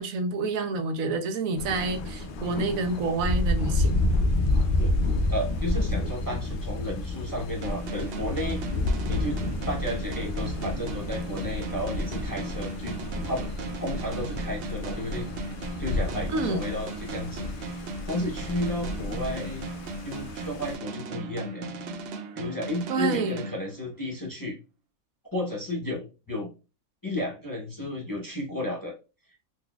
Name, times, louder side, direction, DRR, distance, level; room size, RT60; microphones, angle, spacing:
voice 1, 0.0-4.1 16.3-16.7 22.9-23.4, right 3 dB, 80° right, 1.0 m, -28 dB
Thunder, 1.6-20.8, left 2 dB, 70° left, 0.5 m, -30 dB
voice 2, 5.3-8.6 9.0-9.4 9.7-13.0 13.2-13.5 13.8-15.5 15.8-19.7 20.0-21.7 22.3-24.6 25.3-26.5 27.0-29.0, left 1 dB, 20° left, 0.6 m, -33 dB
sound 1, 7.6-24.2, right 3 dB, 65° right, 0.6 m, -38 dB
3.9 x 2.7 x 2.3 m
omnidirectional pair, 1.5 m